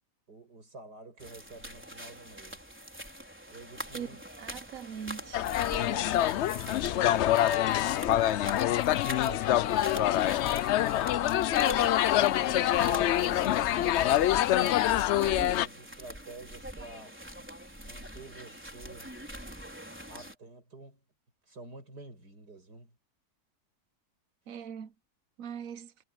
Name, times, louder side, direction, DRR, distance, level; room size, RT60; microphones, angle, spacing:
voice 1, 0.3-2.7 3.5-4.2 5.7-10.5 11.0-13.3 14.0-17.5 17.8-19.1 20.1-21.0 21.5-23.0, right 2 dB, 85° right, 7.6 m, -48 dB
sound 1, 1.2-20.3, equal, 5° right, 4.3 m, -44 dB
voice 2, 3.9-5.5 24.5-24.9 25.4-25.9, right 8 dB, 65° right, 1.1 m, -41 dB
Wind instrument woodwind instrument, 4.9-12.4, left 1 dB, 45° left, 5.3 m, -53 dB
sound 2, 5.3-15.7, left 13 dB, 85° left, 0.6 m, -26 dB
omnidirectional pair, 1.7 m